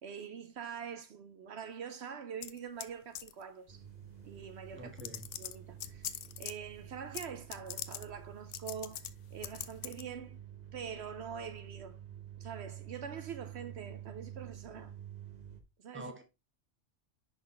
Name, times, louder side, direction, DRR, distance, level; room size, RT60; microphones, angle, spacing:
voice 1, 0.0-3.8 4.2-4.9 5.4-10.4 10.7-12.0 12.4-14.9 15.8-16.1, right 7 dB, 70° right, 0.9 m, -44 dB
sound 1, 2.4-2.9 3.1-3.4 4.4-4.5 5.0-6.5 7.1-7.3 7.5-8.0 8.5-9.1 9.4-10.0, left 11 dB, 85° left, 0.9 m, -41 dB
sound 2, 3.7-15.6, right 10 dB, 40° right, 0.9 m, -49 dB
voice 2, 4.7-5.3 15.9-16.2, right 1 dB, 10° right, 1.2 m, -46 dB
10.5 x 4.0 x 3.3 m
omnidirectional pair, 1.2 m